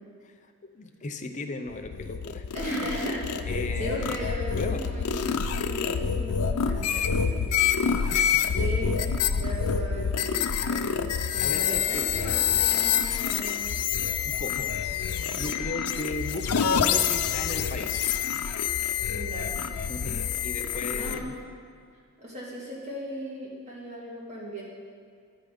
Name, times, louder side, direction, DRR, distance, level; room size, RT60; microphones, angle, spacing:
voice 1, 0.6-2.4 3.4-4.2 4.5-4.8 8.0-8.5 11.4-12.1 14.2-18.1 19.9-21.4, left 2 dB, 35° left, 5 dB, 0.6 m, -36 dB
sound 1, 1.7-21.2, left 7 dB, 90° left, 0.5 m, -27 dB
voice 2, 2.5-7.4 8.5-9.0 9.3-13.8 19.1-19.6 20.9-21.3 22.2-24.6, equal, 30° right, -5 dB, 2.3 m, -37 dB
9.9 x 5.2 x 7.7 m, 2.2 s
head